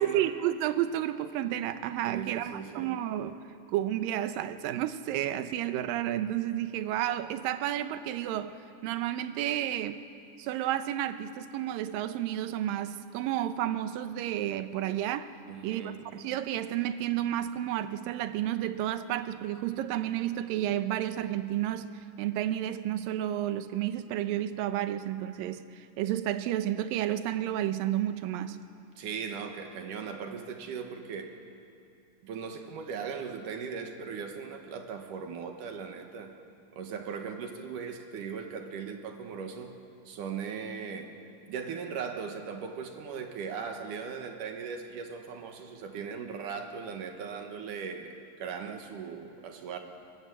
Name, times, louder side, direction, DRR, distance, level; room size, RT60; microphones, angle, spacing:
voice 1, 0.0-3.4 3.7-8.6 8.8-10.0 10.4-15.3 15.6-28.6, right 12 dB, 85° right, 11 dB, 2.5 m, -31 dB
voice 2, 2.1-2.9 15.5-16.0 29.0-31.3 32.2-36.3 36.7-39.7 40.1-41.1 41.5-49.8, right 6 dB, 70° right, 5 dB, 2.8 m, -38 dB
23.5 x 19.0 x 8.0 m, 2.6 s
omnidirectional pair, 3.9 m